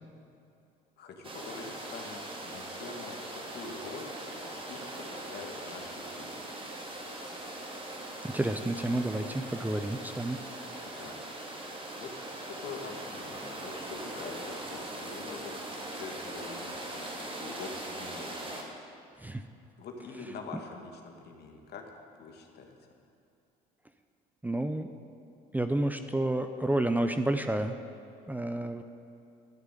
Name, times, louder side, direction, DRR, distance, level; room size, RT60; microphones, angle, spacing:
voice 1, 1.0-4.1 4.4-6.5 10.9-11.2 11.9-12.1 12.4-18.6 19.8-22.8, left 4 dB, 60° left, 2 dB, 2.1 m, -45 dB
sound 1, 1.2-18.6, right 1 dB, 30° right, 2.5 m, -41 dB
voice 2, 8.2-10.4 19.2-19.4 20.5-20.6 24.4-24.9 25.5-27.8 28.3-28.8, right 1 dB, 10° right, 8 dB, 0.7 m, -30 dB
13.0 x 7.0 x 9.2 m, 2.6 s
supercardioid pair, 80°, 19 cm